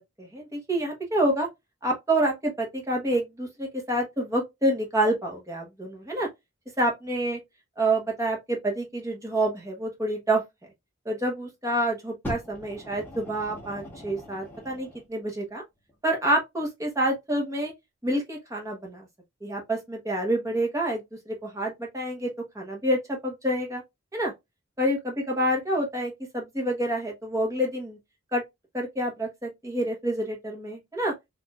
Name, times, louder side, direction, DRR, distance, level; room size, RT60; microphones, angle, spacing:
voice 1, 0.2-1.5 1.8-6.3 6.8-7.4 7.8-10.4 11.0-15.6 16.0-17.7 18.0-19.1 19.4-22.3 22.5-23.8 24.1-24.3 24.8-28.0 28.3-28.4 28.7-31.1, right 1 dB, 15° right, 1.1 m, -27 dB
Fire, 12.2-15.1 15.9-16.0, equal, 10° left, 1.2 m, -40 dB
4.5 x 2.7 x 2.3 m
head